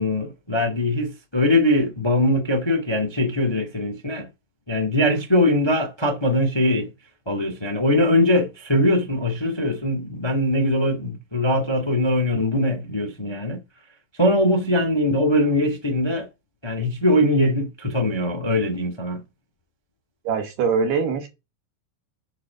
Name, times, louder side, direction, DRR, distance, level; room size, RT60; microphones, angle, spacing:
voice 1, 0.0-4.3 4.7-6.9 7.2-13.6 14.2-16.3 16.6-19.2, left 1 dB, 15° left, 0.8 m, -21 dB
voice 2, 20.3-21.3, right 5 dB, 70° right, 3.9 m, -22 dB
8.5 x 5.2 x 6.2 m
omnidirectional pair, 4.9 m